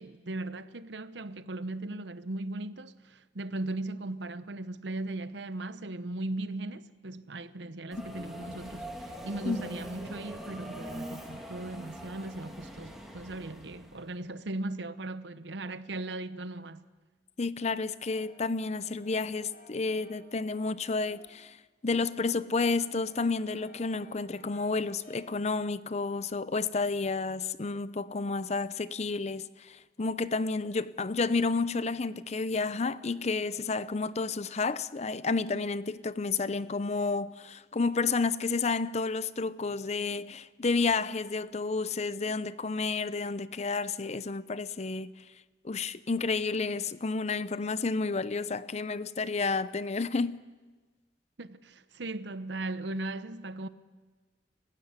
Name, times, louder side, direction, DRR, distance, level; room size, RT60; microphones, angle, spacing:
voice 1, 0.0-16.8 51.4-53.7, right 2 dB, 70° right, 0.9 m, -38 dB
Subway metro underground, 7.9-14.1, equal, ahead, 2.8 m, -43 dB
voice 2, 17.4-21.6 21.8-45.1 45.6-50.4, left 4 dB, 40° left, 0.6 m, -31 dB
Brass instrument, 17.8-21.5 21.8-25.5, left 1 dB, 55° left, 3.2 m, -57 dB
29.0 x 15.5 x 8.1 m
head